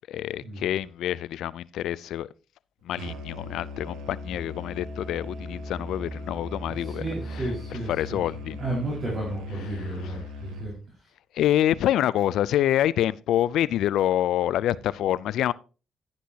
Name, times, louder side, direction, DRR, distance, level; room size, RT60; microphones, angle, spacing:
voice 1, 0.1-2.3 2.8-7.1 7.3-7.5 7.9-8.6 9.7-9.9 11.3-15.5, left 12 dB, 80° left, 0.4 m, -26 dB
Musical instrument, 3.0-10.8, left 1 dB, 85° right, 1.2 m, -38 dB
voice 2, 6.8-10.7, right 1 dB, 35° right, 4.6 m, -33 dB
11.5 x 10.0 x 2.8 m
cardioid pair, 90°, 0 cm